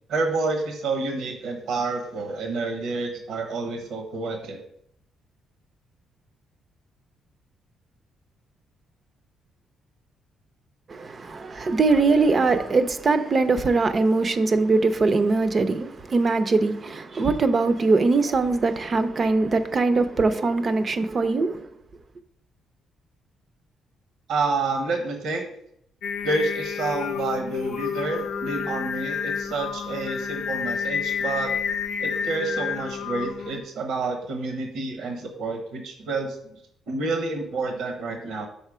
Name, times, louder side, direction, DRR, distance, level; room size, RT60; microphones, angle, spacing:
voice 1, 0.1-4.6 24.3-25.4 26.2-31.5 32.0-36.4 36.9-38.5, right 3 dB, 75° right, 1.0 m, -29 dB
voice 2, 10.9-21.7, right 3 dB, 40° right, 0.6 m, -22 dB
Singing, 26.0-33.6, left 7 dB, 75° left, 0.6 m, -29 dB
5.6 x 4.1 x 4.9 m
cardioid pair, 90°, 0 cm